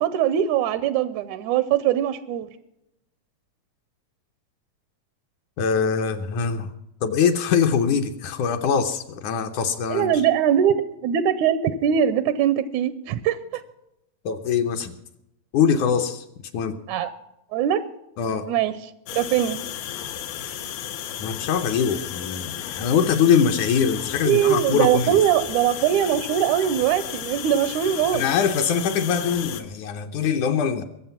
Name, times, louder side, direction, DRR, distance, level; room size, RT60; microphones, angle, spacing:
voice 1, 0.0-2.5 9.9-13.6 16.9-17.1 17.5-17.8 18.5-18.7 19.1-19.6 24.2-28.2, right 10 dB, 85° right, 14 dB, 1.7 m, -21 dB
voice 2, 5.6-6.7 7.0-10.2 14.3-15.0 15.5-16.2 16.5-16.8 18.2-18.5 21.2-25.2 28.1-30.8, left 7 dB, 70° left, 6 dB, 2.0 m, -23 dB
sound 1, 19.1-29.6, left 10 dB, 90° left, 3.0 m, -34 dB
22.0 x 7.6 x 5.8 m, 0.85 s
omnidirectional pair, 4.1 m